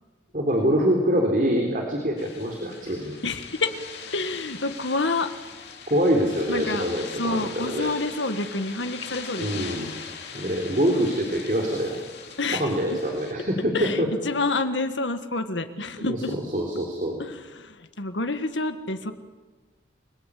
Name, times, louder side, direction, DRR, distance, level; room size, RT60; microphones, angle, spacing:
voice 1, 0.3-3.1 5.9-7.1 7.3-7.9 9.4-9.9 10.3-12.0 12.5-14.1 15.8-17.2, equal, 45° right, 2 dB, 3.8 m, -25 dB
sound 1, 2.2-13.3, left 6 dB, 65° left, 3.6 m, -41 dB
voice 2, 3.2-3.7 4.1-5.3 6.5-6.9 7.1-9.7 12.4-13.0 13.7-16.4 17.2-19.1, left 3 dB, 85° left, 9 dB, 1.9 m, -28 dB
29.5 x 21.5 x 8.6 m, 1.3 s
head